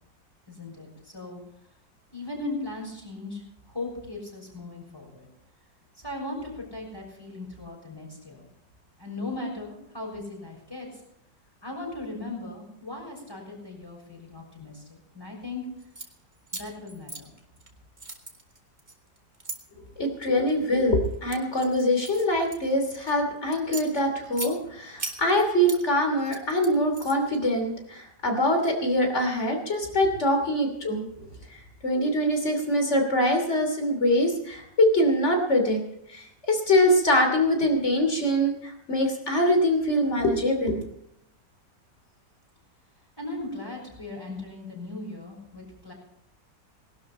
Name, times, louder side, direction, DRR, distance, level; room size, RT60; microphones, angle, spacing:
voice 1, 0.5-1.4 2.1-5.3 6.0-8.4 9.0-10.9 11.6-15.7 16.5-17.3 31.2-31.3 43.2-45.9, left 2 dB, 10° left, -2 dB, 6.4 m, -38 dB
sound 1, 15.8-16.1 16.5-17.7 18.0-19.6 20.2-20.6 21.0-23.1 23.5-24.5 25.0-25.8 26.2-27.4, right 2 dB, 25° right, 1.8 m, -38 dB
voice 2, 20.0-31.0 31.5-35.8 36.1-40.8, left 1 dB, 40° left, 4 dB, 3.3 m, -24 dB
20.0 x 12.0 x 4.3 m, 0.79 s
omnidirectional pair, 1.9 m